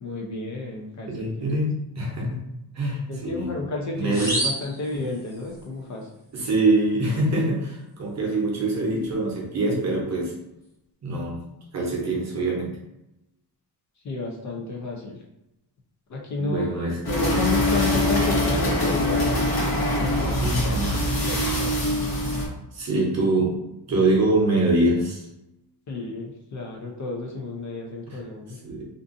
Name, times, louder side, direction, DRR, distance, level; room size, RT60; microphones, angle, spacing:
voice 1, 0.0-1.6 3.1-6.1 14.0-15.2 16.1-16.8 17.1-19.4 20.0-20.2 21.1-21.9 25.9-28.6, left 3 dB, 45° left, 0 dB, 0.5 m, -31 dB
voice 2, 1.1-2.4 2.7-3.5 3.9-4.3 6.3-10.3 11.0-11.4 11.7-12.7 16.3-17.0 20.4-21.0 22.7-23.6 23.9-25.2 28.1-28.2 28.6-28.9, right 2 dB, 40° right, -2 dB, 0.7 m, -24 dB
sound 1, 4.1-5.6, right 1 dB, 10° left, 0.8 m, -30 dB
sound 2, 17.0-22.5, left 1 dB, 65° left, 1.0 m, -23 dB
2.5 x 2.4 x 2.5 m, 0.88 s
wide cardioid pair, 175°, 40 cm